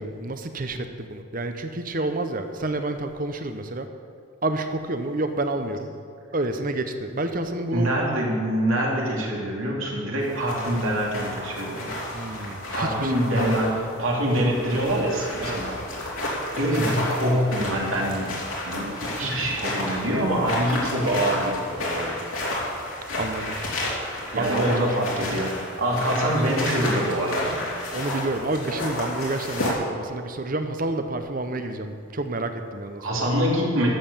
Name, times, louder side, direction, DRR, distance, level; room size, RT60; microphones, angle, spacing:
voice 1, 0.0-3.9 4.4-5.9 6.3-7.9 12.1-13.7 15.4-15.6 23.2-23.6 24.4-25.2 27.9-33.2, right 2 dB, 40° right, 7 dB, 0.8 m, -29 dB
voice 2, 7.7-11.9 12.7-15.8 16.6-18.3 18.6-22.2 24.3-25.5 25.8-27.6 33.0-33.9, right 1 dB, 80° right, -2 dB, 2.7 m, -25 dB
sound 1, 10.2-29.7, left 1 dB, 85° left, 3.1 m, -32 dB
13.0 x 7.7 x 6.9 m, 2.2 s
head